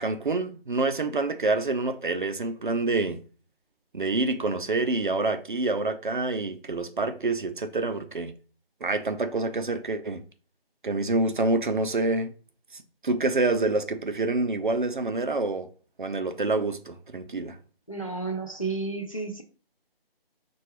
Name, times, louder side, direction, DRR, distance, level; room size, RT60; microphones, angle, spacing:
voice 1, 0.0-3.2 3.9-8.3 8.8-10.2 10.8-12.3 12.7-15.7 16.0-17.6, right 3 dB, 55° right, 0.4 m, -27 dB
voice 2, 17.9-19.4, right 3 dB, 35° left, 0.4 m, -31 dB
5.5 x 2.3 x 3.0 m
figure-of-eight pair, 175°, 30 cm